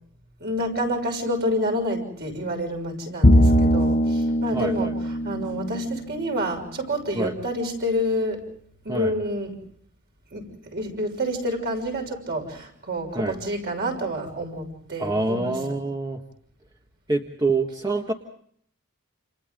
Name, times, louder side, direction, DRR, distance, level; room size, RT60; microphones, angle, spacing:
voice 1, 0.4-4.9 5.2-8.4 8.8-9.6 10.3-15.8, equal, 50° right, 2 dB, 6.3 m, -28 dB
Bowed string instrument, 3.2-6.7, equal, 35° left, 1.2 m, -21 dB
voice 2, 4.5-4.9 7.1-7.3 8.9-9.1 13.1-13.3 15.0-16.2 17.1-18.1, right 2 dB, 20° right, 2 dB, 1.6 m, -26 dB
29.5 x 29.0 x 3.8 m, 0.63 s
head